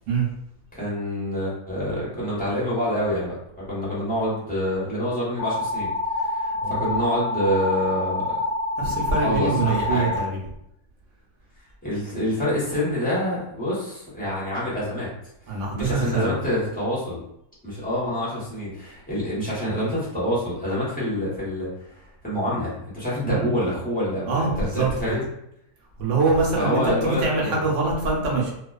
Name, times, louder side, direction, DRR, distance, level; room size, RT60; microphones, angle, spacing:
voice 1, 0.7-8.4 8.8-10.2 11.8-15.1 15.4-17.2 17.6-25.2 26.6-27.6, equal, 10° left, -9 dB, 0.7 m, -27 dB
sound 1, 5.4-10.2, left 2 dB, 65° left, 0.8 m, -27 dB
voice 2, 8.8-10.4 15.5-16.3 23.2-23.5 24.2-24.9 26.0-28.6, right 3 dB, 65° right, -2 dB, 0.9 m, -24 dB
2.4 x 2.2 x 2.3 m, 0.77 s
omnidirectional pair, 1.6 m